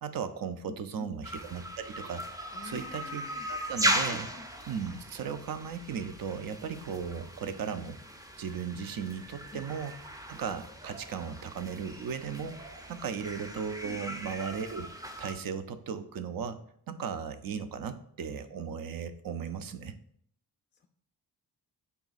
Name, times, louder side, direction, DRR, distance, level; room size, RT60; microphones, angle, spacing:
voice 1, 0.0-3.2 3.5-4.3 4.7-8.0 8.4-9.9 10.3-12.6 12.9-16.6 16.9-19.9, right 6 dB, 50° right, 11 dB, 0.5 m, -36 dB
voice 2, 0.7-1.2 2.5-3.5 4.0-4.5 9.5-9.7 13.8-14.0 20.8-20.9, left 4 dB, 25° left, 4 dB, 0.3 m, -47 dB
sound 1, 1.2-15.3, right 1 dB, 10° right, 0.6 m, -38 dB
3.9 x 2.3 x 3.9 m, 0.68 s
supercardioid pair, 50°, 46 cm